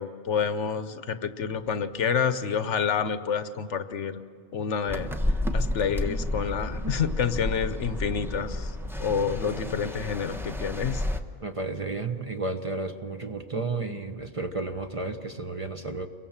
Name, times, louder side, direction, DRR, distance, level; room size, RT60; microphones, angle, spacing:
voice 1, 0.0-4.2 4.5-5.1 5.5-8.7 9.0-11.0, left 6 dB, 70° left, 12 dB, 1.2 m, -28 dB
sound 1, 4.9-11.2, left 1 dB, ahead, 0.8 m, -31 dB
voice 2, 11.4-16.1, right 3 dB, 25° right, 6 dB, 1.1 m, -32 dB
29.5 x 23.0 x 7.3 m, 2.1 s
omnidirectional pair, 1.3 m